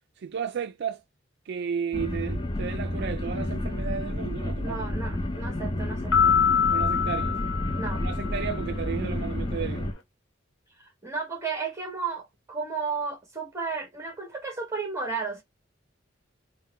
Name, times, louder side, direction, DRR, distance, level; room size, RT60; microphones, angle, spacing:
voice 1, 0.2-1.0 1.5-4.8 6.7-7.4 8.0-9.9, right 7 dB, 60° right, 0.4 m, -33 dB
sound 1, 1.9-9.9, left 1 dB, 25° left, 0.6 m, -30 dB
voice 2, 4.6-6.3 7.7-8.0 11.0-15.4, right 4 dB, 15° right, 1.5 m, -33 dB
sound 2, 6.1-8.6, left 7 dB, 70° left, 1.1 m, -25 dB
3.8 x 2.1 x 4.2 m
head